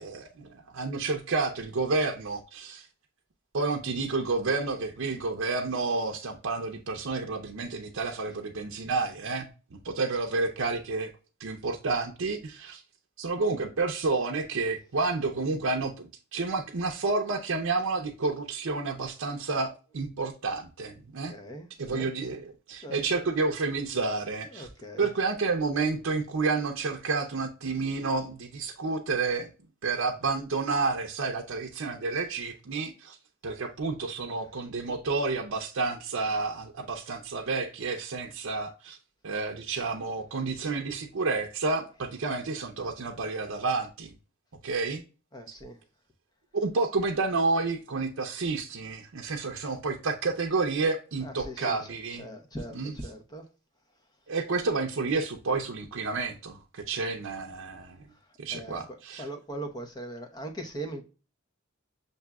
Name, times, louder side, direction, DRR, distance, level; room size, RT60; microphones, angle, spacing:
voice 1, 0.0-2.9 3.5-11.1 11.4-12.8 13.2-21.3 21.8-24.7 25.0-29.5 29.8-33.2 33.4-39.0 39.2-44.1 44.6-45.0 46.5-52.3 52.7-52.9 54.3-58.0 58.4-59.3, right 3 dB, 80° right, 0.6 m, -30 dB
voice 2, 21.3-22.1 22.8-23.0 24.3-25.1 41.9-42.0 45.3-45.8 51.2-53.4 58.5-61.0, right 1 dB, 20° left, 0.8 m, -40 dB
7.0 x 2.6 x 2.3 m
head